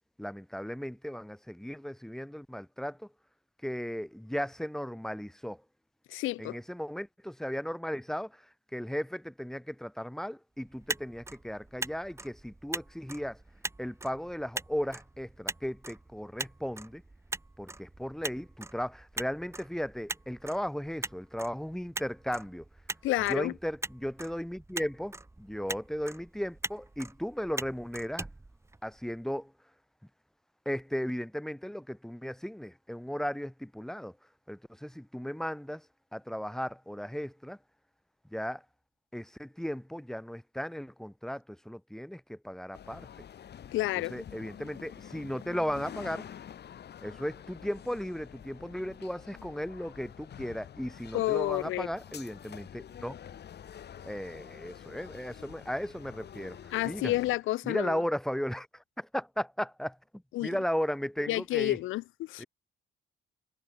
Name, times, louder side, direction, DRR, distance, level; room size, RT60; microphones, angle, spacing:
voice 1, 0.2-3.1 3.6-5.6 6.4-8.4 8.7-13.4 13.8-17.0 17.6-22.6 23.3-28.3 28.8-29.5 30.7-34.1 34.5-35.8 36.1-37.6 38.3-38.6 39.1-43.1 44.1-46.3 47.0-53.2 54.0-57.1 57.6-60.0 60.4-61.8 62.4-62.5, equal, ahead, 2.0 m, -36 dB
voice 2, 6.1-6.6 23.0-23.5 43.7-44.2 51.1-51.9 56.7-58.0 60.3-60.6 61.3-62.4, left 17 dB, 85° left, 0.7 m, -30 dB
Motor vehicle (road), 10.6-29.2, right 2 dB, 15° right, 1.4 m, -42 dB
sound 1, 42.7-57.4, left 9 dB, 55° left, 2.1 m, -48 dB
cardioid pair, 90°, 20 cm